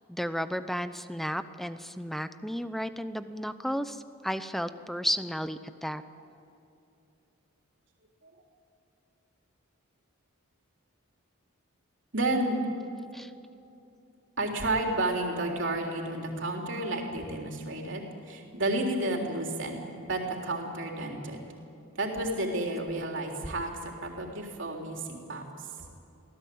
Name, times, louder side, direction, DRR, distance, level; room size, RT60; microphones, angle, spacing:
voice 1, 0.1-6.0 13.1-13.3, equal, ahead, 11 dB, 0.6 m, -33 dB
voice 2, 12.1-12.6 14.4-21.4 22.0-25.9, right 2 dB, 60° right, 1 dB, 3.6 m, -31 dB
24.5 x 17.0 x 8.6 m, 2.8 s
head